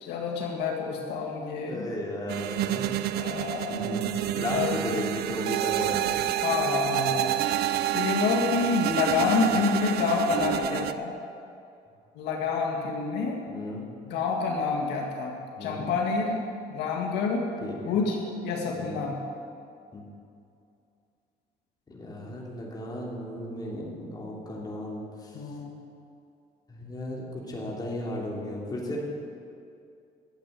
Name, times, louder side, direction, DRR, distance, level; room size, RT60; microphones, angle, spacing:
voice 1, 0.0-1.9 3.1-3.8 4.4-4.8 6.4-7.3 7.9-11.1 12.2-13.4 14.0-16.4 16.7-17.4 17.8-18.2 18.4-19.2 25.3-25.8, left 4 dB, 85° left, 0 dB, 1.9 m, -28 dB
voice 2, 1.3-3.0 3.6-4.1 4.3-6.2 6.5-6.6 9.4-9.6 13.5-13.8 15.6-15.9 17.6-18.0 18.7-19.0 19.9-20.0 21.9-25.4 26.7-29.0, left 1 dB, 25° left, -3 dB, 3.0 m, -35 dB
sound 1, 2.3-10.9, right 12 dB, 70° right, 0.6 m, -29 dB
12.5 x 8.4 x 7.6 m, 2.5 s
cardioid pair, 110°, 17 cm